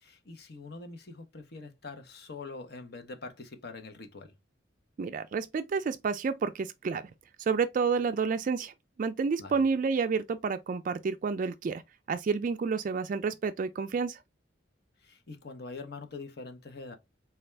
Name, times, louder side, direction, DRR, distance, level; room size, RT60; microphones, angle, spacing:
voice 1, 0.0-4.3 9.4-9.6 15.0-17.0, left 3 dB, 60° left, 0.8 m, -44 dB
voice 2, 5.0-7.0 7.4-8.7 9.0-11.8 12.1-14.2, right 5 dB, 45° right, 0.3 m, -29 dB
4.2 x 2.3 x 3.2 m
head